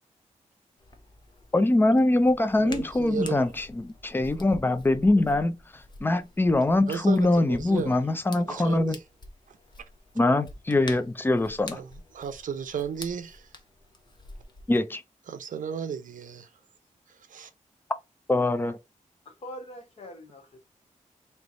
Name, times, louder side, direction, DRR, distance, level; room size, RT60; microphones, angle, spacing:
Hands, 0.8-14.8, left 2 dB, 35° left, 0.8 m, -47 dB
voice 1, 1.5-5.6 6.0-9.0 10.2-11.8 14.7-15.0 18.3-18.8, left 2 dB, 15° left, 0.5 m, -23 dB
voice 2, 2.6-3.4 6.9-8.0 8.3-9.0 9.5-9.6 11.7-13.5 15.3-16.5 17.1-17.5, right 7 dB, 85° right, 0.7 m, -34 dB
voice 3, 19.2-20.6, equal, 50° left, 1.5 m, -43 dB
3.3 x 2.9 x 3.8 m
wide cardioid pair, 140°, 13 cm